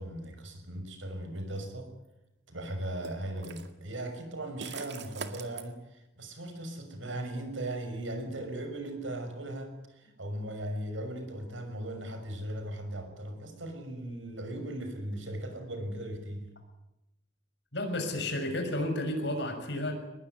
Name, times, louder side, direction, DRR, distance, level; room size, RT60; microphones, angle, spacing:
voice 1, 0.0-1.9 2.5-16.5, right 1 dB, 80° right, 6 dB, 6.1 m, -38 dB
sound 1, 1.5-1.7 3.0-3.7 4.6-5.6, right 5 dB, 60° right, 2.1 m, -42 dB
voice 2, 17.7-19.9, left 1 dB, 60° left, 5 dB, 6.4 m, -32 dB
23.5 x 20.5 x 9.6 m, 0.92 s
head